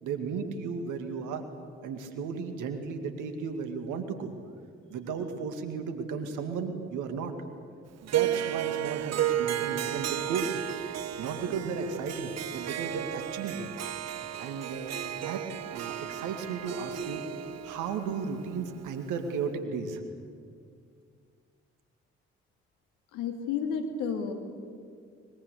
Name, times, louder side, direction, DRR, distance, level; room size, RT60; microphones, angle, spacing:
voice 1, 0.0-1.5 1.8-4.3 4.9-7.3 8.0-10.6 11.2-13.7 14.4-17.3 17.6-20.0, right 5 dB, 80° right, 7 dB, 2.3 m, -35 dB
Harp, 8.1-19.4, right 12 dB, 55° right, 0.9 m, -33 dB
voice 2, 23.1-24.3, left 6 dB, 85° left, 6 dB, 2.3 m, -31 dB
23.0 x 22.0 x 8.3 m, 2.1 s
hypercardioid pair, 45°, 31 cm